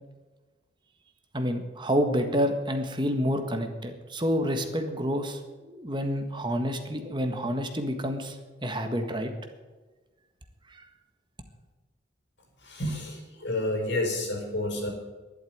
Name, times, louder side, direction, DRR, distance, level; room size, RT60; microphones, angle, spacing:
voice 1, 1.3-9.3 10.7-10.8, equal, 25° right, 6 dB, 1.6 m, -29 dB
voice 2, 12.6-14.9, left 1 dB, 80° left, 2 dB, 5.4 m, -30 dB
12.0 x 11.5 x 9.4 m, 1.2 s
head